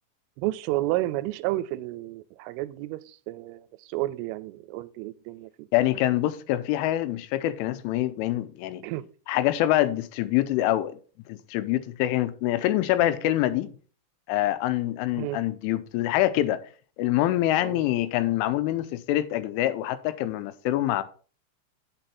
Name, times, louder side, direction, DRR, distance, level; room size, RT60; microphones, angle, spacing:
voice 1, 0.4-5.5 8.8-9.1 15.2-15.4 17.6-17.8, right 17 dB, 85° right, 3.1 m, -31 dB
voice 2, 5.7-8.8 9.3-11.0 11.3-13.7 14.3-16.6 17.0-21.0, left 14 dB, 85° left, 3.1 m, -25 dB
9.0 x 6.1 x 4.2 m
omnidirectional pair, 5.6 m